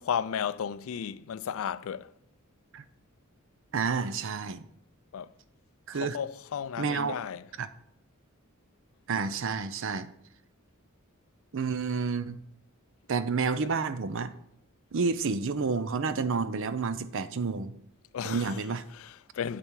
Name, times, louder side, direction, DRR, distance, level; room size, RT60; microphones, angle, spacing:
voice 1, 0.0-2.1 5.1-5.3 6.0-7.4 13.6-13.7 18.1-18.6 18.9-19.6, left 8 dB, 70° left, 0.4 m, -34 dB
voice 2, 3.7-4.7 5.9-6.2 6.8-7.1 7.6-7.7 9.1-10.1 11.5-12.4 13.1-14.3 14.9-17.7 18.2-18.8, right 4 dB, 65° right, 0.6 m, -30 dB
8.8 x 6.9 x 4.7 m
head